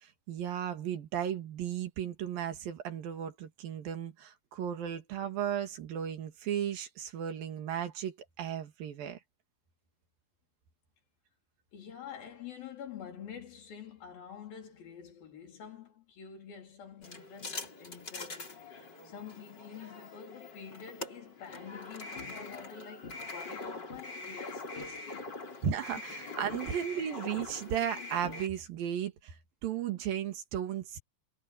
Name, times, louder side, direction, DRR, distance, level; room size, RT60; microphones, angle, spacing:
voice 1, 0.0-9.2 25.6-29.4 29.6-31.0, right 9 dB, 80° right, 3.8 m, -35 dB
voice 2, 11.7-25.4 25.9-26.0, left 7 dB, 85° left, 5.5 m, -47 dB
sound 1, 17.0-28.5, left 3 dB, 30° left, 4.4 m, -43 dB
omnidirectional pair, 4.1 m